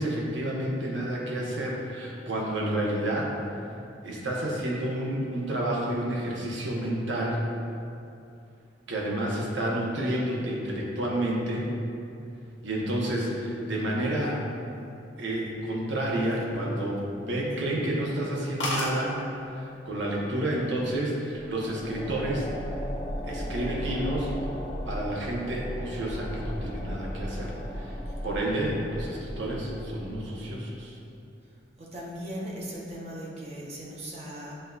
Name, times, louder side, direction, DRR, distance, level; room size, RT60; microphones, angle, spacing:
voice 1, 0.0-3.3 4.0-7.5 8.9-11.7 12.6-14.4 15.2-19.2 19.5-22.5 23.2-24.3 24.9-28.0 28.2-31.0, right 1 dB, 80° right, -3 dB, 0.8 m, -30 dB
sound 1, 16.1-17.1 17.5-17.7 18.1-18.2 18.3-18.4 18.6-19.0 19.9-20.2 20.5-21.0, left 1 dB, 80° left, 0.8 m, -32 dB
sound 2, 21.4-30.6, equal, 25° left, 0.7 m, -36 dB
voice 2, 31.8-34.6, equal, 35° right, -4 dB, 0.7 m, -38 dB
7.4 x 2.5 x 2.3 m, 2.6 s
head